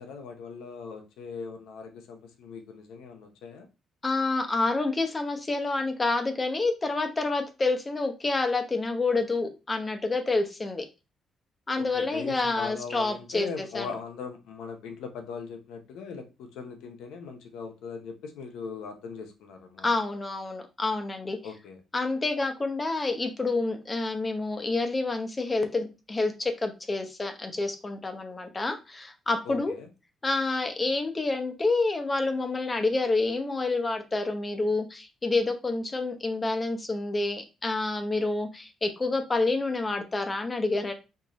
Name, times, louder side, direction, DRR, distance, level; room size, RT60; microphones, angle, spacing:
voice 1, 0.0-3.7 11.8-19.9 21.4-21.8 29.5-29.9, left 5 dB, 90° left, 5 dB, 0.8 m, -40 dB
voice 2, 4.0-10.8 11.7-13.9 19.8-21.4 21.9-29.7 30.2-40.9, left 3 dB, 25° left, 6 dB, 0.8 m, -28 dB
4.6 x 2.5 x 3.0 m, 0.28 s
cardioid pair, 90°, 0 cm